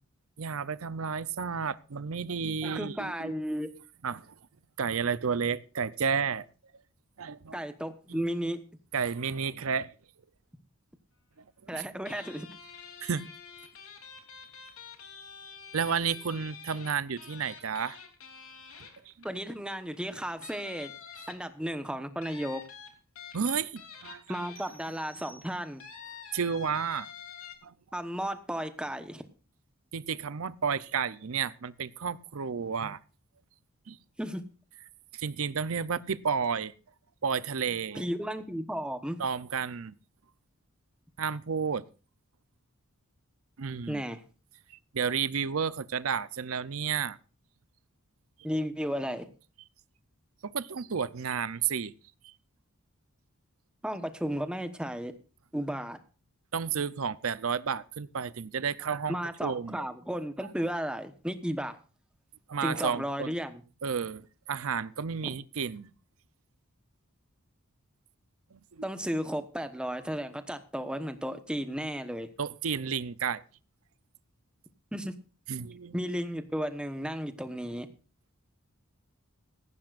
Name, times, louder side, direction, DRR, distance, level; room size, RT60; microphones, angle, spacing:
voice 1, 0.4-3.3 4.0-4.3 4.8-6.5 7.2-7.6 8.1-8.2 8.9-9.9 11.7-11.8 13.0-13.3 15.7-18.0 19.1-19.2 23.3-24.4 26.3-27.1 27.6-27.7 29.9-33.0 33.9-34.0 35.1-36.7 37.2-38.1 39.2-39.9 41.2-41.8 43.6-44.0 44.7-47.2 50.4-51.9 52.2-52.3 56.5-59.9 62.5-63.3 63.8-65.9 68.5-68.9 72.4-73.4 75.5-76.0, right 6 dB, 70° right, 16 dB, 0.6 m, -32 dB
voice 2, 2.6-3.7 7.5-8.6 11.7-12.5 19.2-20.9 21.3-22.6 24.3-25.8 27.9-29.2 34.2-34.4 37.9-39.2 43.9-44.2 48.4-49.3 53.8-55.1 55.5-56.0 59.1-61.8 62.6-63.6 65.2-65.3 68.8-72.3 74.9-75.1 75.9-77.9, equal, 5° right, 8 dB, 1.1 m, -34 dB
sound 1, 12.0-19.5 19.9-20.1 20.4-21.7 22.2-25.0 25.8-27.5, left 6 dB, 75° left, 3.1 m, -47 dB
sound 2, 24.6-26.1, right 2 dB, 45° right, 2.0 m, -54 dB
18.0 x 15.0 x 2.5 m, 0.36 s
head